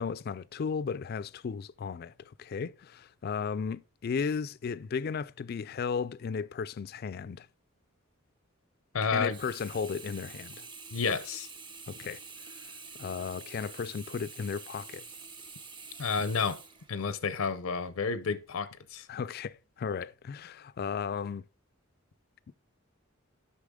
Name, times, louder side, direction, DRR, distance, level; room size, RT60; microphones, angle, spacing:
voice 1, 0.0-7.5 9.0-10.6 11.9-12.2 13.0-15.0 19.1-21.4, left 6 dB, 45° left, 0.3 m, -35 dB
voice 2, 8.9-9.4 10.9-11.5 16.0-16.6 16.9-19.0, left 5 dB, 90° left, 0.6 m, -30 dB
Sink (filling or washing), 9.2-17.5 18.0-18.1, right 4 dB, 25° right, 0.8 m, -47 dB
8.3 x 5.6 x 3.6 m
head